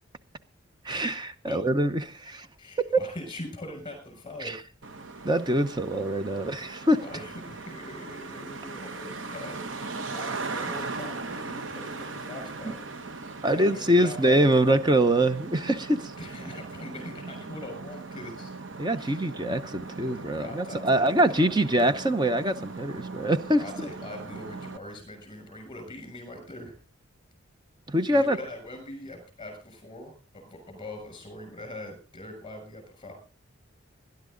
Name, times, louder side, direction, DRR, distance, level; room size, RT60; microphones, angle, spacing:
voice 1, 0.8-2.5 2.9-3.0 4.4-4.6 5.2-7.0 12.6-12.7 13.4-16.1 18.8-23.6 27.9-28.4, right 1 dB, 20° right, 11 dB, 0.8 m, -24 dB
voice 2, 2.6-4.6 7.0-9.7 10.0-12.8 13.5-14.8 16.2-18.5 19.0-19.3 19.9-22.0 23.6-26.7 28.1-33.1, left 1 dB, 25° left, 6 dB, 6.7 m, -42 dB
Traffic noise roadway noise, 4.8-24.8, right 3 dB, 60° right, 0.9 m, -39 dB
21.0 x 12.0 x 3.9 m, 0.34 s
head